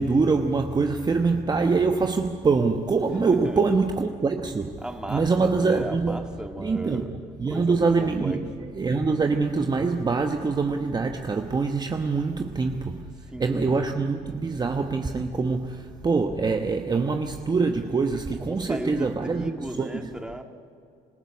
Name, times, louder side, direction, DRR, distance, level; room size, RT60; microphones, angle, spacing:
voice 1, 0.0-6.3 6.6-7.1 7.4-8.4 8.7-13.1 13.4-20.1, right 4 dB, 25° right, 1.1 m, -24 dB
voice 2, 3.0-3.7 4.8-8.7 13.3-13.8 18.4-20.4, right 1 dB, 5° right, 1.9 m, -36 dB
26.0 x 15.0 x 9.6 m
cardioid pair, 110°, 17 cm